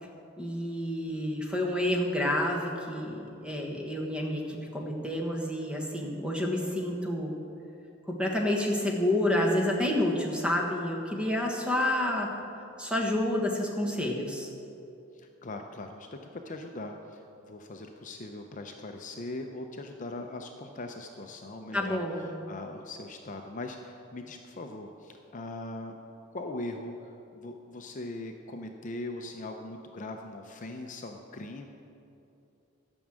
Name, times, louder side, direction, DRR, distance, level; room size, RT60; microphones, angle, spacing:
voice 1, 0.4-7.3 8.1-12.3 12.8-14.5 21.7-22.2, left 1 dB, 5° right, 0 dB, 1.3 m, -29 dB
voice 2, 15.1-26.0 26.3-31.6, left 2 dB, 35° left, 4 dB, 0.6 m, -40 dB
12.5 x 6.2 x 7.5 m, 2.8 s
head